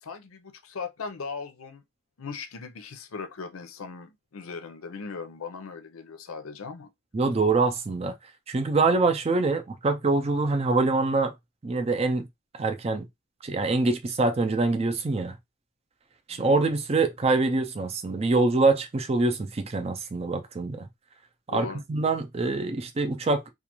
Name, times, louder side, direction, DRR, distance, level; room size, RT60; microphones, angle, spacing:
voice 1, 0.0-1.8 2.2-6.9 16.3-16.5 21.5-21.8, left 5 dB, 85° left, 0.6 m, -38 dB
voice 2, 7.1-8.1 8.5-11.3 11.6-12.3 12.5-13.1 13.4-15.4 16.3-20.9 21.5-23.4, right 3 dB, 30° right, 0.4 m, -25 dB
2.4 x 2.4 x 2.9 m
head